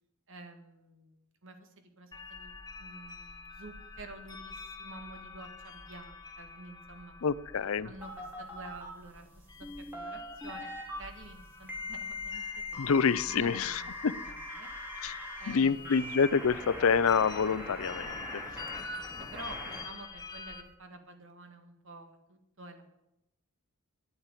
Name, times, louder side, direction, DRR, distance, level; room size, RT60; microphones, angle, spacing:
voice 1, 0.3-7.1 7.8-13.9 14.3-14.7 15.4-16.0 18.7-22.8, right 2 dB, 60° right, 7 dB, 1.9 m, -50 dB
sound 1, 2.1-20.6, left 4 dB, 20° left, 1.2 m, -47 dB
voice 2, 7.2-7.9 12.8-14.1 15.0-18.6, left 6 dB, 65° left, 17 dB, 0.5 m, -28 dB
sound 2, 8.0-8.9 9.6-11.0 11.7-15.5 15.8-19.8, left 2 dB, 10° right, 3.3 m, -41 dB
9.2 x 9.0 x 9.7 m, 0.86 s
head